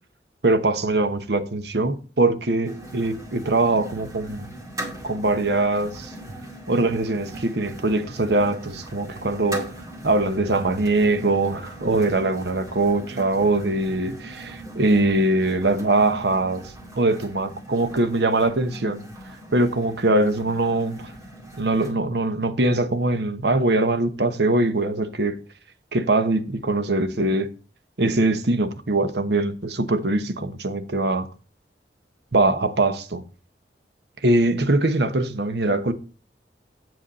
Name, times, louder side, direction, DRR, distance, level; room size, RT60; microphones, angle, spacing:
voice 1, 0.4-4.5 5.0-6.1 6.7-9.7 10.0-16.6 16.9-19.0 19.5-21.1 21.6-25.4 25.9-27.5 28.0-31.3 32.3-33.2 34.2-35.9, right 2 dB, 70° right, 1.1 m, -22 dB
sound 1, 2.6-21.9, right 1 dB, 20° right, 2.0 m, -40 dB
7.9 x 7.2 x 4.1 m
head